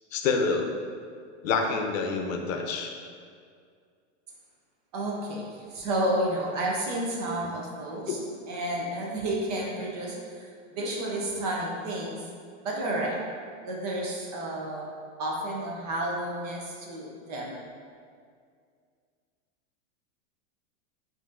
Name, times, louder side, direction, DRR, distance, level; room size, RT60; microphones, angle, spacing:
voice 1, 0.1-0.7 1.4-2.9 8.1-8.2, left 4 dB, 85° left, 3 dB, 0.6 m, -27 dB
voice 2, 4.9-8.2 8.5-10.5 10.7-12.2 12.6-13.2 13.6-17.6, right 1 dB, 35° right, -2 dB, 0.4 m, -31 dB
5.6 x 2.6 x 2.5 m, 2.2 s
supercardioid pair, 165°, 38 cm